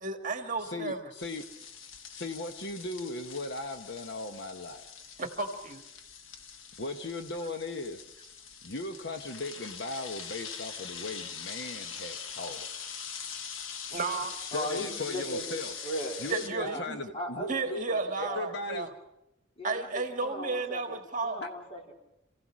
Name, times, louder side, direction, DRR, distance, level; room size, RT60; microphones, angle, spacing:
voice 1, 0.0-1.0 5.2-5.8 13.9-14.4 16.3-17.0 17.5-18.9 19.6-21.4, right 3 dB, 40° right, 5 dB, 1.7 m, -33 dB
voice 2, 0.6-1.4 2.1-4.9 6.8-8.0 8.6-12.7 14.5-15.7 16.2-17.8 18.2-18.9 21.4-21.5, left 2 dB, 60° left, 7 dB, 1.0 m, -37 dB
sound 1, 1.2-16.5, left 6 dB, 80° left, 1.3 m, -43 dB
voice 3, 14.5-15.6 15.8-16.2 16.6-16.8 17.1-18.4 19.6-21.0 21.2-21.9, equal, 30° left, 0 dB, 3.9 m, -38 dB
27.5 x 16.0 x 6.2 m, 0.86 s
head